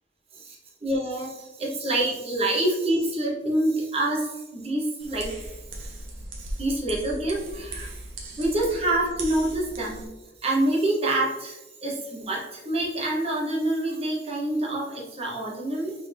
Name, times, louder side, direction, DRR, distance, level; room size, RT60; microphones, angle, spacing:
voice 1, 0.3-5.4 5.8-5.9 6.6-7.9 8.4-10.1 10.4-15.9, right 1 dB, 30° right, -2 dB, 1.0 m, -27 dB
sound 1, 5.0-10.1, right 1 dB, 70° right, 1.0 m, -38 dB
4.3 x 3.5 x 3.3 m, 1.1 s
head